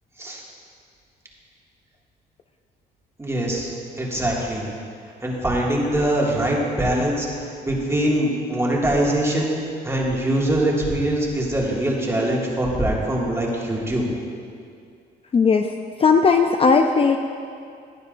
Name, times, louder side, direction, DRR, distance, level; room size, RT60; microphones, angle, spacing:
voice 1, 3.2-3.7 4.0-4.7 5.2-7.3 7.6-9.5 9.8-14.1, right 1 dB, 15° right, -4 dB, 2.2 m, -22 dB
voice 2, 15.3-15.7 16.0-17.2, left 5 dB, 35° left, 5 dB, 0.5 m, -16 dB
15.5 x 10.0 x 2.6 m, 2.4 s
cardioid pair, 100°, 18 cm